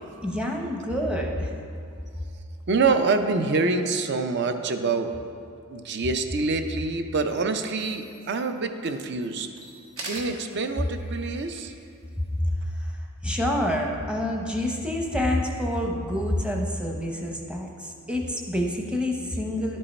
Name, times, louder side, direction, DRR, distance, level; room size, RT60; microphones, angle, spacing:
voice 1, 0.2-1.6 12.4-13.0 13.2-19.8, left 1 dB, 5° right, 1 dB, 0.7 m, -27 dB
voice 2, 2.7-5.1 5.7-9.5 10.0-11.7, right 4 dB, 55° right, 8 dB, 0.5 m, -26 dB
sound 1, 7.8-12.9, right 2 dB, 70° right, 1.5 m, -45 dB
11.0 x 5.4 x 4.2 m, 2.4 s
head